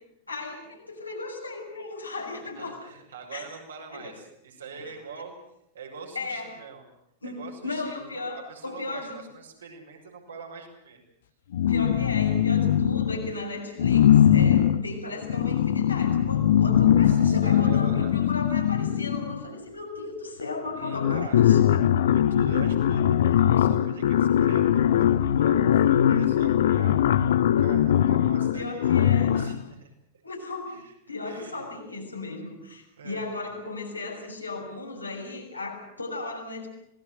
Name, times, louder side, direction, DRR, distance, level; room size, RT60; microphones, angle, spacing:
voice 1, 0.3-2.9 3.3-3.4 3.9-4.1 4.7-4.9 6.1-6.5 7.2-8.4 8.6-9.2 11.7-21.6 28.5-29.4 30.2-30.8 31.1-36.7, left 3 dB, 85° left, 0 dB, 6.7 m, -36 dB
voice 2, 2.4-5.3 5.7-6.8 7.2-11.0 16.8-18.1 20.8-29.0 29.3-29.9 30.6-30.9 31.2-31.6 33.0-33.6, right 5 dB, 70° right, 1 dB, 6.8 m, -43 dB
sound 1, 11.5-13.3 13.8-19.5 20.4-20.5 20.8-29.6, left 10 dB, 60° left, 0.9 m, -21 dB
26.5 x 19.5 x 7.9 m, 0.78 s
figure-of-eight pair, 90°, 0 cm